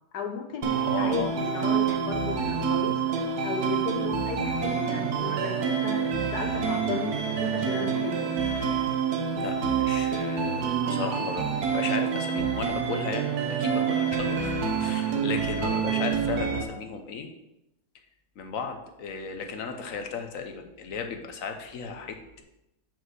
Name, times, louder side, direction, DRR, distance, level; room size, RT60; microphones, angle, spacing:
voice 1, 0.1-0.7 1.0-3.1 3.4-6.0 6.3-8.5, left 5 dB, 90° left, 3 dB, 1.6 m, -35 dB
sound 1, 0.6-16.6, right 6 dB, 80° right, 1.5 m, -27 dB
voice 2, 0.7-1.4 9.3-11.5 11.7-14.5 14.8-17.3 18.4-22.4, left 6 dB, 60° left, 5 dB, 1.2 m, -35 dB
6.0 x 5.1 x 6.3 m, 0.88 s
omnidirectional pair, 1.6 m